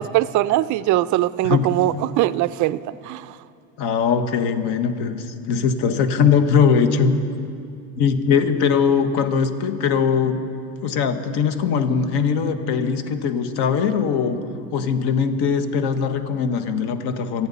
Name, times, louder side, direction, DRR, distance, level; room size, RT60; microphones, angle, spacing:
voice 1, 0.0-2.8 3.1-3.3, right 15 dB, 45° right, 0.4 m, -21 dB
voice 2, 3.8-7.2 8.0-10.4 10.8-14.4 14.7-17.5, left 6 dB, 60° left, 1.3 m, -20 dB
27.5 x 9.7 x 4.1 m
supercardioid pair, 115°, 46 cm